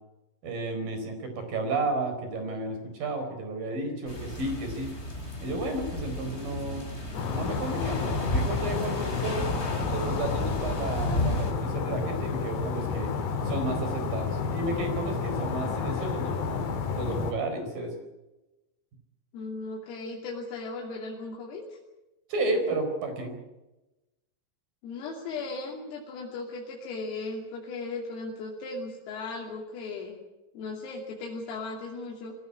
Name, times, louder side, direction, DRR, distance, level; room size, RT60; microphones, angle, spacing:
voice 1, 0.4-4.9 5.4-6.9 7.2-9.5 9.9-13.1 13.4-17.9 22.3-23.3, right 2 dB, 45° right, 6 dB, 5.9 m, -32 dB
sound 1, 4.1-11.5, left 1 dB, 15° left, 3.6 m, -33 dB
sound 2, 7.1-17.3, left 5 dB, 60° left, 4.3 m, -31 dB
voice 2, 19.3-21.8 24.8-30.2 30.6-32.3, left 3 dB, 80° left, -2 dB, 5.4 m, -37 dB
23.0 x 16.0 x 9.8 m, 1.0 s
omnidirectional pair, 6.0 m